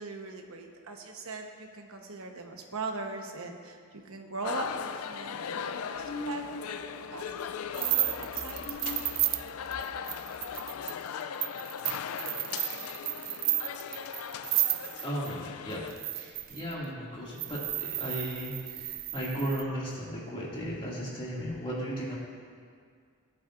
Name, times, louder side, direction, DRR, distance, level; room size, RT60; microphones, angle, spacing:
voice 1, 0.0-8.7, right 3 dB, 70° right, 3 dB, 1.1 m, -40 dB
sound 1, 4.4-15.9, left 7 dB, 75° left, 0.4 m, -38 dB
sound 2, 6.0-6.9 7.2-7.5 7.7-10.9, left 3 dB, 90° left, 2.4 m, -43 dB
sound 3, 7.7-15.3 15.9-16.7 17.4-19.6, right 15 dB, 45° right, 0.3 m, -32 dB
voice 2, 15.0-22.2, equal, 25° left, -6 dB, 2.4 m, -36 dB
19.0 x 8.7 x 2.6 m, 2.1 s
head